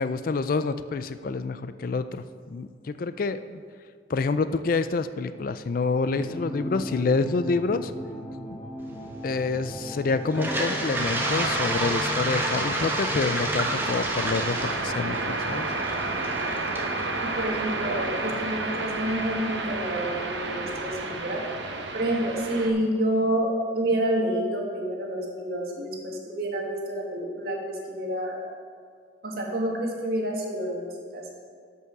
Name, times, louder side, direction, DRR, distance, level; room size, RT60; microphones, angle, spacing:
voice 1, 0.0-3.6 4.1-7.9 9.2-15.7, left 4 dB, 50° left, 12 dB, 0.4 m, -27 dB
sound 1, 6.0-13.6, equal, 25° left, 1.2 m, -36 dB
Toilet flush, 10.3-18.2, right 1 dB, 10° right, 1.1 m, -30 dB
sound 2, 10.9-22.7, right 3 dB, 75° right, 1.0 m, -31 dB
voice 2, 17.2-21.4 21.9-28.4 29.2-31.3, right 1 dB, 55° right, -1 dB, 1.9 m, -28 dB
12.5 x 5.6 x 5.9 m, 2.1 s
head